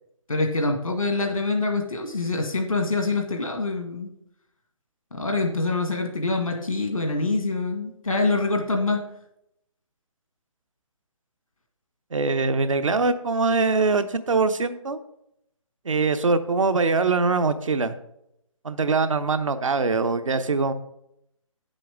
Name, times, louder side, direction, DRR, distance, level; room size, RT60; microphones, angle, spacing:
voice 1, 0.3-4.1 5.1-9.0, left 3 dB, 80° left, 3 dB, 1.7 m, -25 dB
voice 2, 12.1-15.0 15.8-18.0 18.6-20.7, right 4 dB, 70° right, 10 dB, 0.9 m, -23 dB
9.2 x 7.6 x 3.5 m, 0.77 s
figure-of-eight pair, 140°, 17 cm